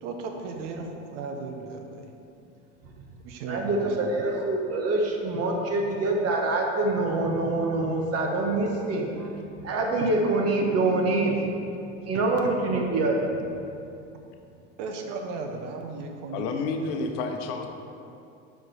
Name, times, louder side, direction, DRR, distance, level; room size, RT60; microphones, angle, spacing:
voice 1, 0.0-2.1 3.2-4.0 4.2-4.3 10.0-10.1 12.1-12.2 14.8-16.9, right 4 dB, 70° right, 3 dB, 1.0 m, -36 dB
voice 2, 3.5-9.3 9.6-11.4 12.1-13.7, right 2 dB, 40° right, 1 dB, 1.3 m, -25 dB
voice 3, 16.3-17.7, left 4 dB, 65° left, 5 dB, 0.9 m, -30 dB
7.3 x 4.7 x 4.8 m, 2.6 s
hypercardioid pair, 95°, 37 cm